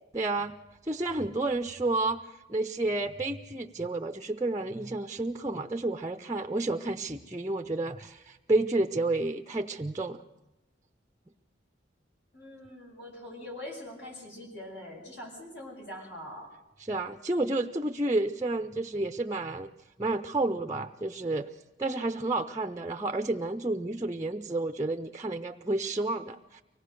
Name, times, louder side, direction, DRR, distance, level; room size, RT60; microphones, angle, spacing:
voice 1, 0.1-0.6 0.8-10.2 16.9-19.7 20.0-21.5 21.8-26.6, right 2 dB, 15° right, 6 dB, 0.6 m, -30 dB
voice 2, 12.3-16.5, left 1 dB, 65° left, 0 dB, 7.3 m, -43 dB
24.5 x 18.0 x 6.6 m, 0.99 s
head